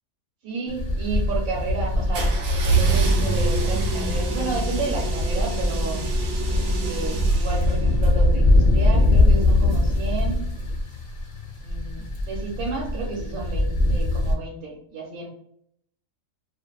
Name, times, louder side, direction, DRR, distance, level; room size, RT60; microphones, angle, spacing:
voice 1, 0.4-6.0 6.5-10.4 11.6-15.3, right 3 dB, 85° right, -2 dB, 1.1 m, -32 dB
sound 1, 0.7-14.3, left 2 dB, 60° left, 0.6 m, -22 dB
sound 2, 2.1-8.1, right 3 dB, 65° right, 0.8 m, -25 dB
2.4 x 2.3 x 2.2 m, 0.71 s
omnidirectional pair, 1.4 m